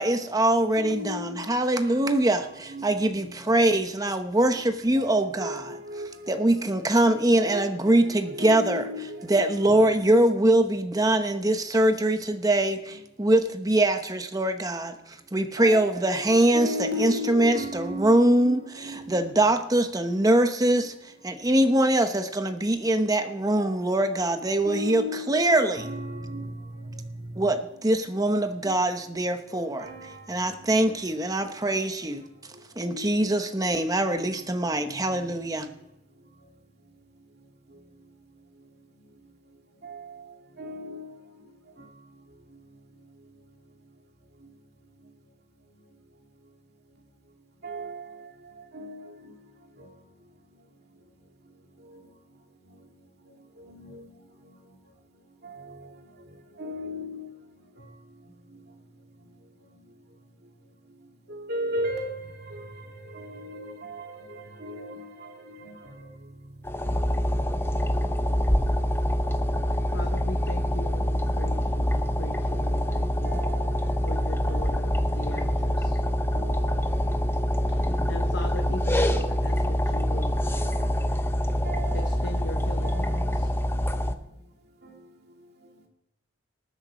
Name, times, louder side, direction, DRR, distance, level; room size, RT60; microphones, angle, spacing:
voice 1, 0.0-5.7 6.3-8.8 9.3-15.0 15.3-16.7 17.0-20.9 21.2-25.9 27.4-29.9 30.3-32.2 32.8-35.7, right 1 dB, 20° right, 1.0 m, -23 dB
voice 2, 0.8-1.4 1.8-2.1 2.7-2.8 3.1-3.2 4.5-4.6 5.0-6.5 7.1-10.2 12.9-13.0 15.6-19.2 23.6-23.9 24.6-26.5 26.9-27.0 28.6-28.7 29.5-30.4 32.8-33.3 33.6-33.7 34.9-35.3 39.8-40.3 40.6-41.1 47.6-48.2 48.7-49.1 49.8-49.9 53.7-54.0 55.4-55.8 56.6-57.2 61.3-66.1 73.2-73.8 74.4-74.7 76.3-76.8 78.6-78.8 80.5-80.9 81.6-82.1 82.8-83.4, left 1 dB, 60° right, 2.3 m, -36 dB
sound 1, 66.6-84.1, equal, 15° left, 0.7 m, -25 dB
voice 3, 69.9-73.4 74.0-76.0 77.7-80.3 81.9-83.5, left 2 dB, 75° left, 1.0 m, -40 dB
19.5 x 7.2 x 5.1 m
head